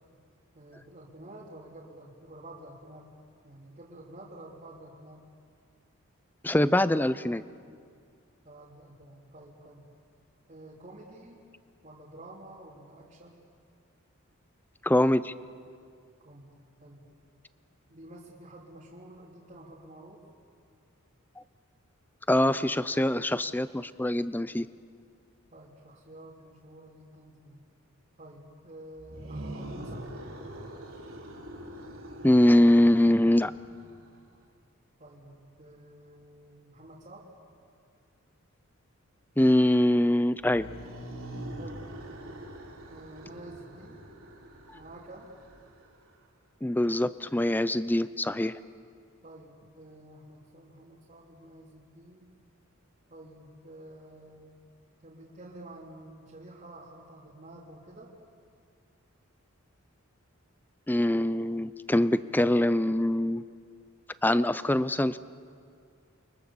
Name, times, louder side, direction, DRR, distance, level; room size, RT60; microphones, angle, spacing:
voice 1, 0.5-3.1 3.4-5.2 8.4-9.9 10.5-11.4 11.8-13.5 16.2-16.5 16.8-17.0 17.9-20.2 25.5-27.6 28.2-30.1 35.0-37.3 41.6-41.9 42.9-44.0 44.7-45.3 49.2-52.3 53.1-54.6 55.0-58.1, right 1 dB, 35° right, -6 dB, 3.1 m, -49 dB
voice 2, 6.4-7.4 14.8-15.3 22.3-24.7 32.2-33.5 39.4-40.7 46.6-48.5 60.9-63.4 64.2-65.2, left 1 dB, 10° left, 14 dB, 0.5 m, -23 dB
sound 1, 29.0-34.1 40.4-46.1, right 1 dB, 70° right, 4.6 m, -43 dB
29.5 x 24.0 x 7.2 m, 2.2 s
head